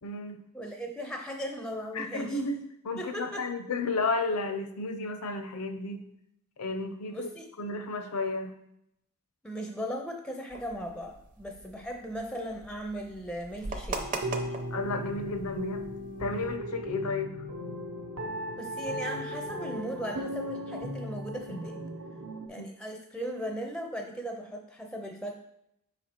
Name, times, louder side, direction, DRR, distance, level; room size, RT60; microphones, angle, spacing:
voice 1, 0.0-0.5 1.9-6.1 6.6-7.3 7.6-8.6 14.7-15.9 16.2-17.4 21.5-21.6 22.6-22.7, left 3 dB, 75° left, 8 dB, 0.7 m, -33 dB
voice 2, 0.5-2.4 3.0-3.5 7.1-7.5 9.4-14.2 18.6-21.8 22.5-25.4, equal, 5° left, 3 dB, 0.4 m, -37 dB
sound 1, 10.5-16.6, right 3 dB, 35° right, 0.6 m, -41 dB
sound 2, 14.0-22.5, equal, 70° right, 0.8 m, -37 dB
5.5 x 4.2 x 4.3 m, 0.78 s
head